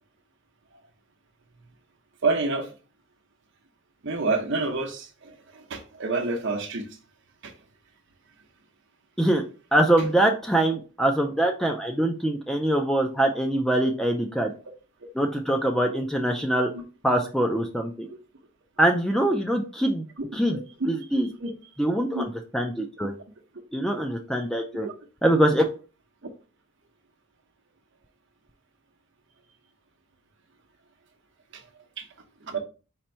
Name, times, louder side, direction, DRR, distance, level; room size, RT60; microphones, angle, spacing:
voice 1, 2.2-2.7 4.0-7.0 7.4-7.5 16.7-16.8 18.1-18.2 19.8-19.9 20.2-20.9 21.4-21.5 22.1-22.2 24.8-24.9 26.2-26.3 31.5-31.6 32.0-32.1 32.4-32.6, right 3 dB, 55° right, 0.8 m, -29 dB
voice 2, 9.7-14.5 15.1-16.7 17.0-18.1 18.8-20.0 20.3-20.6 20.9-21.3 21.8-23.1 23.7-24.9 25.2-25.6, right 1 dB, ahead, 0.3 m, -23 dB
4.3 x 2.6 x 4.3 m
head